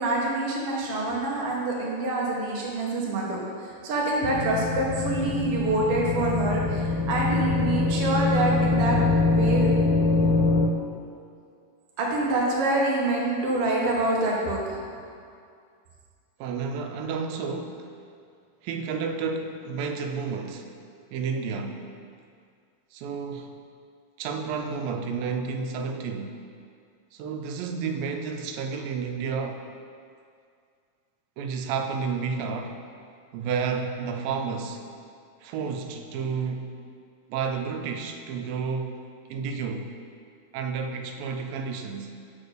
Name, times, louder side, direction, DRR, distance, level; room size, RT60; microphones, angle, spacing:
voice 1, 0.0-9.0 9.3-9.7 12.0-14.8, right 2 dB, 70° right, -3 dB, 1.4 m, -26 dB
sound 1, 4.2-10.7, left 3 dB, 90° left, 2.5 m, -24 dB
voice 2, 16.4-18.0 18.6-20.8 21.1-21.9 22.9-23.6 24.2-26.4 27.1-29.7 31.4-32.8 33.3-34.9 35.4-36.8 37.3-39.9 40.5-42.1, right 5 dB, 85° right, 5 dB, 2.3 m, -31 dB
7.5 x 4.3 x 6.5 m, 2.2 s
omnidirectional pair, 4.1 m